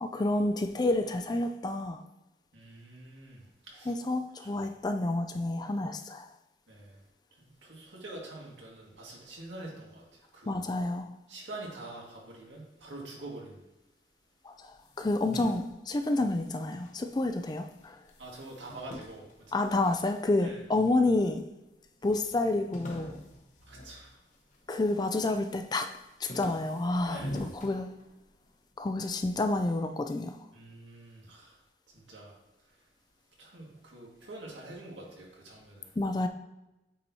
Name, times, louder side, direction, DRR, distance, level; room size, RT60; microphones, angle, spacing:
voice 1, 0.0-2.0 3.9-6.3 10.5-11.1 14.4-14.7 15.0-18.0 19.5-21.4 22.0-23.2 24.7-25.9 26.2-27.9 28.8-30.3 36.0-36.3, left 2 dB, 25° left, 7 dB, 0.3 m, -29 dB
voice 2, 2.5-3.9 4.4-4.5 6.7-7.0 7.4-10.0 10.3-10.6 11.3-13.6 18.2-19.6 20.4-20.6 23.7-24.1 27.1-27.5 30.5-31.6 31.9-32.4 33.4-35.9, right 2 dB, 90° right, -3 dB, 1.9 m, -45 dB
sound 1, 14.7-17.4 17.7-20.2 20.8-21.5 21.8-21.9 22.1-24.7 25.1-25.5 25.9-28.5, left 1 dB, 45° left, 0.9 m, -45 dB
8.4 x 4.5 x 2.7 m, 0.97 s
head